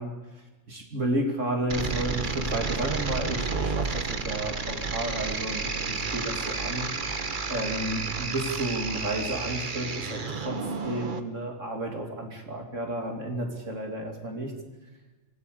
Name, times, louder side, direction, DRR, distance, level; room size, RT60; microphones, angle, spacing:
voice 1, 0.0-6.9 7.5-14.5, right 1 dB, 75° right, 2 dB, 3.3 m, -32 dB
sound 1, 1.7-11.2, right 4 dB, 40° right, 1.3 m, -31 dB
25.5 x 18.0 x 6.8 m, 1.2 s
omnidirectional pair, 1.3 m